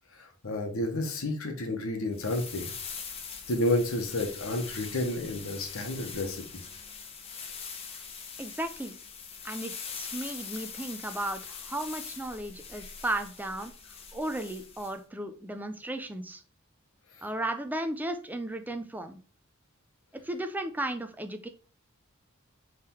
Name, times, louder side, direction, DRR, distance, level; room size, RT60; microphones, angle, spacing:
voice 1, 0.2-2.7 3.5-6.4, left 1 dB, 70° left, 4 dB, 1.0 m, -30 dB
sound 1, 2.1-15.0, left 6 dB, 30° left, 0.7 m, -42 dB
voice 2, 8.4-9.0 9.4-13.7 14.1-16.4 17.2-19.2 20.2-21.5, right 1 dB, 10° right, 7 dB, 0.4 m, -35 dB
3.6 x 3.3 x 4.4 m, 0.39 s
head